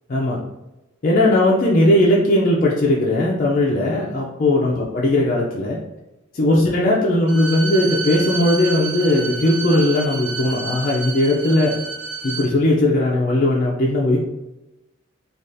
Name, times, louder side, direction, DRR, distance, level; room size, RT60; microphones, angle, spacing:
voice 1, 1.0-5.8 6.3-11.7 12.2-14.2, left 1 dB, 40° left, -4 dB, 0.4 m, -18 dB
Bowed string instrument, 7.3-12.5, right 4 dB, 80° right, 0.5 m, -30 dB
3.4 x 2.3 x 2.6 m, 0.97 s
head